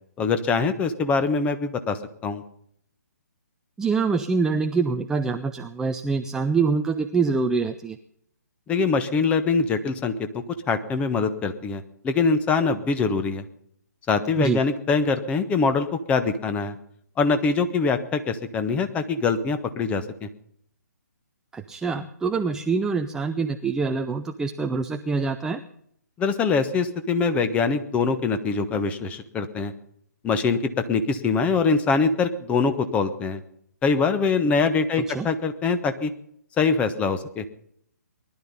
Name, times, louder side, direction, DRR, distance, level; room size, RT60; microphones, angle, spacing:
voice 1, 0.2-2.0 2.2-2.4 8.7-10.1 10.7-13.4 14.1-16.8 17.2-20.3 26.2-29.7 30.2-30.6 30.9-33.4 33.8-36.1 36.6-37.4, left 4 dB, 15° left, 10 dB, 1.2 m, -23 dB
voice 2, 3.8-8.0 14.4-14.6 21.5-25.6 35.0-35.3, right 4 dB, 5° right, 6 dB, 0.6 m, -25 dB
20.0 x 12.0 x 5.4 m, 0.68 s
figure-of-eight pair, 135°, 10 cm